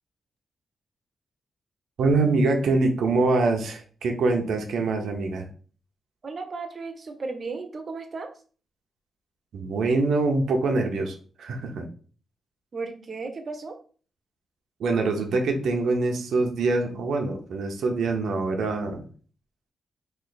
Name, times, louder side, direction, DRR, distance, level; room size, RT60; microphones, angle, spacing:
voice 1, 2.0-5.4 9.5-11.9 14.8-19.0, right 3 dB, 75° right, 3 dB, 0.7 m, -24 dB
voice 2, 6.2-8.3 12.7-13.8, right 4 dB, 35° right, 6 dB, 0.6 m, -35 dB
3.2 x 2.6 x 3.9 m, 0.41 s
wide cardioid pair, 160°, 0 cm